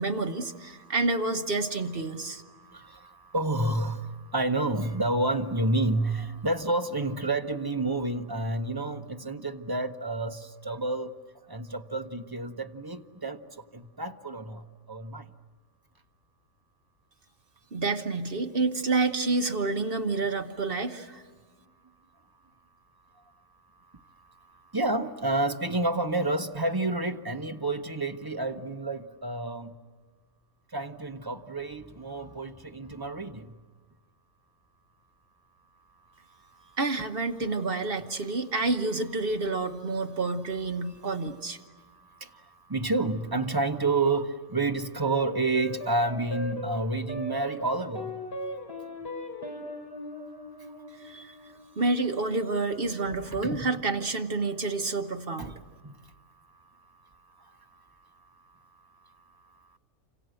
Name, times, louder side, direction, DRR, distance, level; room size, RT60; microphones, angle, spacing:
voice 1, 0.0-2.4 17.7-21.2 36.8-41.6 51.0-51.4 51.8-55.6, right 3 dB, 45° right, 1.4 m, -29 dB
voice 2, 2.5-11.1 11.5-13.4 13.7-15.3 24.7-29.7 30.7-33.5 42.1-48.1 53.3-53.6 55.4-55.5 55.8-55.9, right 2 dB, 20° right, 0.9 m, -29 dB
sound 1, 45.1-53.7, left 1 dB, 45° left, 4.2 m, -40 dB
29.0 x 26.5 x 7.8 m
omnidirectional pair, 1.5 m